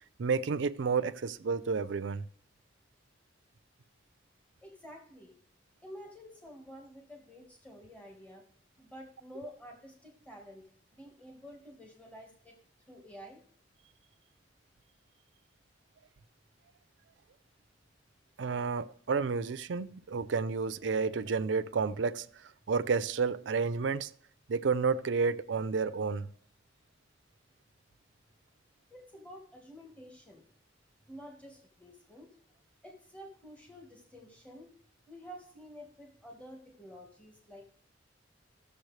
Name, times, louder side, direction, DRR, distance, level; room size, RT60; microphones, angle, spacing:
voice 1, 0.2-2.3 18.4-24.1 24.5-26.3, right 5 dB, 80° right, 0.4 m, -31 dB
voice 2, 4.6-5.3 5.8-8.4 8.8-10.6 10.9-12.6 12.9-13.4 28.9-30.5 31.1-32.3 32.8-34.7 35.1-37.7, equal, 5° left, 1.4 m, -50 dB
15.0 x 7.0 x 3.2 m
head